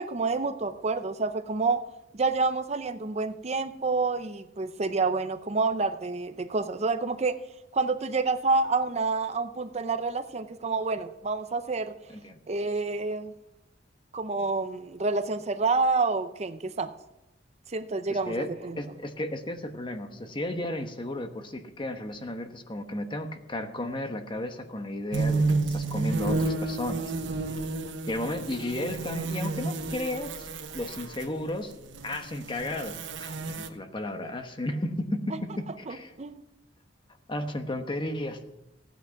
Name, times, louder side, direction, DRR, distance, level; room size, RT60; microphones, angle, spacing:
voice 1, 0.0-1.9 2.1-7.3 7.7-11.9 12.5-13.3 14.1-16.9 17.7-18.8 28.7-28.9 35.9-36.4, right 3 dB, 35° right, 9 dB, 0.6 m, -28 dB
voice 2, 18.1-18.5 18.8-27.0 28.1-30.5 30.7-31.7 32.0-36.1 37.3-38.4, left 1 dB, 25° left, 7 dB, 1.1 m, -34 dB
sound 1, 25.1-31.2 31.8-33.7, right 3 dB, 80° right, 1.1 m, -31 dB
15.5 x 9.2 x 5.8 m, 0.95 s
head